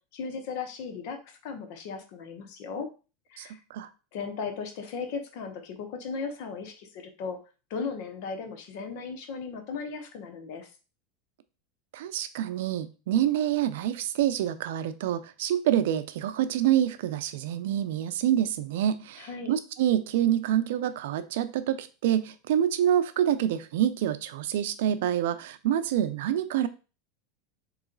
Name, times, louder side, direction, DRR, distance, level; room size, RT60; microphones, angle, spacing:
voice 1, 0.1-2.9 3.3-3.6 4.1-7.4 7.7-10.7 19.2-19.5, left 5 dB, 55° left, 5 dB, 1.0 m, -36 dB
voice 2, 3.4-3.9 11.9-26.7, right 11 dB, 75° right, 12 dB, 0.5 m, -27 dB
3.9 x 3.1 x 3.8 m, 0.33 s
supercardioid pair, 140°, 0 cm